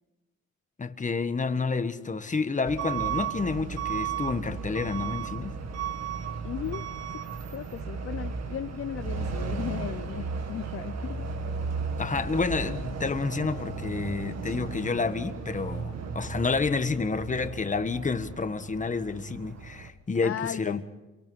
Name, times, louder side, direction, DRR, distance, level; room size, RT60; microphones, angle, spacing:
voice 1, 0.8-5.6 12.0-20.8, left 4 dB, 25° left, 1.4 m, -29 dB
Truck / Alarm, 2.7-19.9, right 5 dB, 60° right, 2.0 m, -35 dB
voice 2, 6.4-7.2 7.5-11.3 14.5-14.6 20.2-20.8, left 10 dB, 45° left, 0.7 m, -36 dB
28.0 x 23.5 x 5.5 m
cardioid pair, 90°, 30 cm